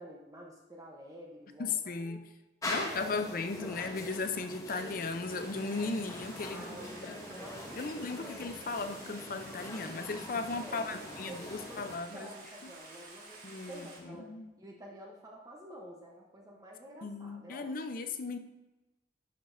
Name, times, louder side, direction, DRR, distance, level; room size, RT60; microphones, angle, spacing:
voice 1, 0.0-2.2 2.7-3.8 6.5-7.0 7.3-8.4 10.6-14.3 14.6-17.7, equal, 20° right, -1 dB, 0.8 m, -50 dB
voice 2, 1.6-2.2 2.7-6.7 7.0-7.2 7.8-12.3 12.6-12.7 13.4-14.5 17.0-18.4, left 4 dB, 50° left, 9 dB, 0.5 m, -36 dB
sound 1, 2.6-12.0, left 1 dB, 20° left, 0.9 m, -43 dB
Stream, 5.2-14.0, right 3 dB, 50° right, 1.5 m, -51 dB
10.5 x 6.0 x 2.6 m, 1.1 s
head